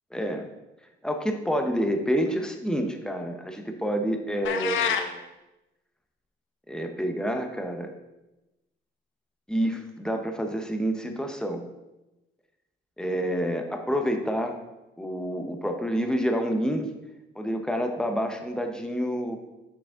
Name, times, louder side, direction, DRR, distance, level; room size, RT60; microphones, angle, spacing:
voice 1, 0.1-0.5 1.0-5.2 6.7-7.9 9.5-11.6 13.0-14.6 15.0-16.8 17.4-19.4, equal, 5° left, 4 dB, 0.9 m, -28 dB
sound 1, 4.4-5.1, left 8 dB, 80° left, 0.7 m, -26 dB
6.9 x 4.9 x 3.7 m, 0.99 s
cardioid pair, 90°, 20 cm